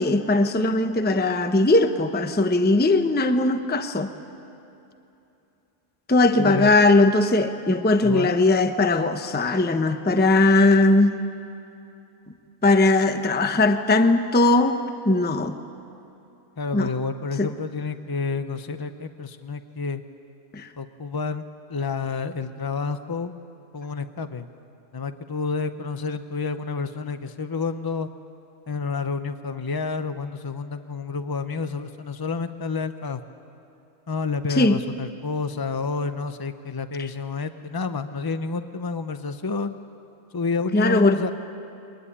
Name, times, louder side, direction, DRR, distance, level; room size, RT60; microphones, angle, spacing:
voice 1, 0.0-4.1 6.1-11.2 12.6-14.8 15.0-15.6 16.7-16.9 17.4-17.5 20.5-20.7 34.5-34.8 37.0-37.1 40.7-41.2, left 2 dB, 10° left, 8 dB, 0.7 m, -19 dB
voice 2, 6.4-6.7 8.0-8.3 16.6-20.0 20.8-21.4 21.7-23.3 23.7-24.5 24.9-28.1 28.7-33.2 34.1-39.8 40.3-41.3, left 4 dB, 35° left, 10 dB, 0.3 m, -29 dB
23.5 x 19.5 x 9.9 m, 2.8 s
omnidirectional pair, 1.4 m